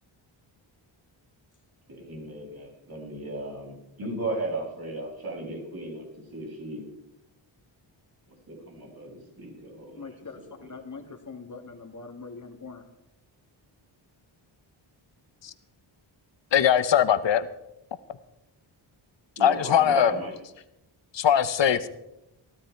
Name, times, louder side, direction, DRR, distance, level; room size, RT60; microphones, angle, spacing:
voice 1, 1.9-6.1 6.3-6.8 8.5-10.0 10.6-10.7 19.4-20.3, right 2 dB, 45° right, 5.5 m, -35 dB
voice 2, 10.0-12.8, left 4 dB, 40° left, 2.0 m, -42 dB
voice 3, 16.5-17.5 19.4-20.1 21.1-21.9, left 9 dB, 60° left, 1.0 m, -21 dB
15.5 x 13.0 x 4.6 m
cardioid pair, 95°, 49 cm